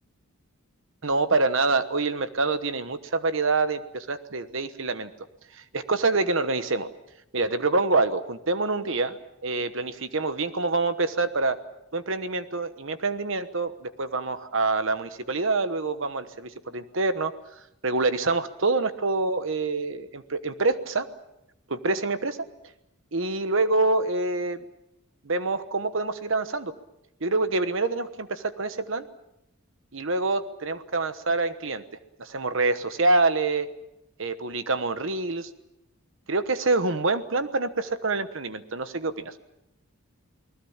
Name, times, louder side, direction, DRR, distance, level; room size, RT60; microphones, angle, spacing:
voice 1, 1.0-5.1 5.5-6.9 7.3-9.2 9.4-11.6 11.9-17.3 17.8-21.1 21.7-22.4 23.1-24.6 25.2-26.7 27.2-29.1 29.9-31.8 32.2-33.7 34.2-35.5 36.3-39.3, right 3 dB, 60° right, 11 dB, 1.1 m, -26 dB
29.0 x 20.0 x 7.3 m, 0.86 s
head